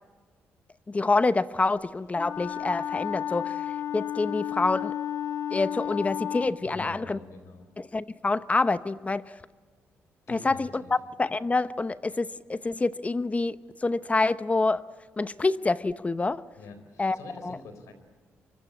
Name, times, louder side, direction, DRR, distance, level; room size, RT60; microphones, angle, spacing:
voice 1, 0.9-3.6 3.9-4.9 5.5-7.2 7.9-9.2 10.3-14.8 15.2-16.4 17.0-17.2 17.4-17.6, left 3 dB, 25° left, 15 dB, 0.8 m, -27 dB
Wind instrument woodwind instrument, 2.1-6.6, left 10 dB, 70° left, 1.7 m, -32 dB
voice 2, 6.6-7.7 10.3-10.9 16.6-17.9, left 3 dB, 85° left, 9 dB, 4.3 m, -45 dB
24.0 x 23.0 x 8.6 m, 1.5 s
cardioid pair, 65°, 5 cm